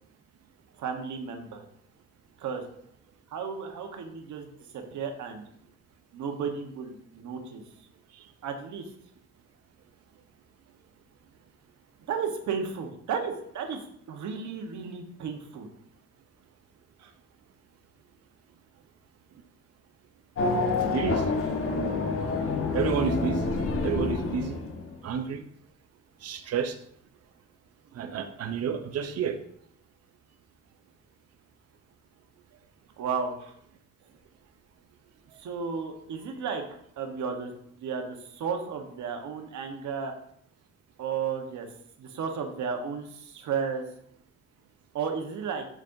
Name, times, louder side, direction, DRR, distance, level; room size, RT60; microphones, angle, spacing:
voice 1, 0.8-1.7 2.4-2.6 3.3-4.5 4.7-5.5 6.1-7.6 8.4-8.9 12.1-13.8 14.1-15.7 17.0-17.1 33.0-33.5 35.4-36.6 37.0-37.5 37.8-40.1 41.0-41.7 42.0-43.8 44.9-45.7, right 6 dB, 70° right, 4 dB, 1.2 m, -33 dB
Race car auto racing / Accelerating revving vroom, 20.4-25.1, left 3 dB, 45° left, 1.3 m, -28 dB
voice 2, 20.9-21.3 21.7-21.9 22.7-23.5 23.8-24.6 25.0-25.4 26.2-26.8 27.9-29.4, right 7 dB, 55° right, 7 dB, 0.7 m, -30 dB
8.3 x 6.3 x 2.7 m, 0.69 s
cardioid pair, 90°, 30 cm